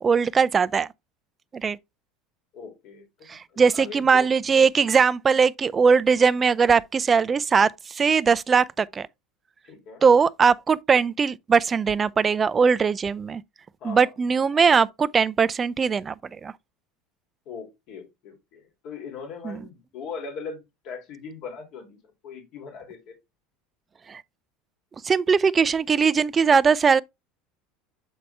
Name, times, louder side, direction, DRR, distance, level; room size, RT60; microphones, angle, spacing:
voice 1, 0.0-0.9 1.5-1.8 3.3-9.1 10.0-13.4 13.8-16.1 16.4-16.5 19.4-19.6 24.1-24.2 25.0-27.0, right 5 dB, 20° right, 0.4 m, -20 dB
voice 2, 2.5-3.1 3.3-4.3 5.8-5.9 9.6-10.0 13.8-14.1 17.5-22.0 22.2-23.1, left 5 dB, 55° left, 2.7 m, -40 dB
7.5 x 4.2 x 3.3 m
supercardioid pair, 135°, 0 cm